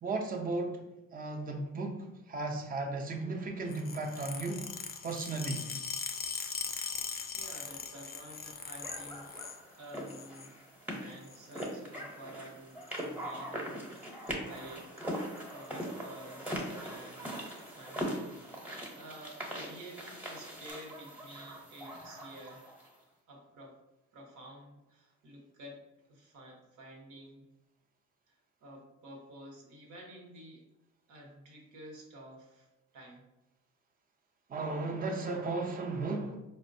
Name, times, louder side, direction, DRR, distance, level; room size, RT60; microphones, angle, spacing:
voice 1, 0.0-0.8 1.1-4.7 5.0-5.7 34.5-36.4, right 3 dB, 30° right, 0.5 m, -35 dB
sound 1, 3.7-9.6 9.9-10.5 11.2-11.7 12.8-13.0 14.0-14.3 14.6-14.7 15.0-15.1 15.4-15.8 16.5-16.6 17.5-17.6, left 6 dB, 30° left, 0.4 m, -40 dB
voice 2, 7.3-14.9 15.5-17.3 17.7-18.6 18.9-22.6 23.3-23.8 24.1-25.8 26.1-27.5 28.3-30.7 31.1-32.7 32.9-33.3, right 1 dB, 80° right, 1.0 m, -51 dB
sound 2, 8.8-22.9, equal, 5° right, 0.8 m, -41 dB
4.2 x 2.1 x 2.6 m
cardioid pair, 90°, 30 cm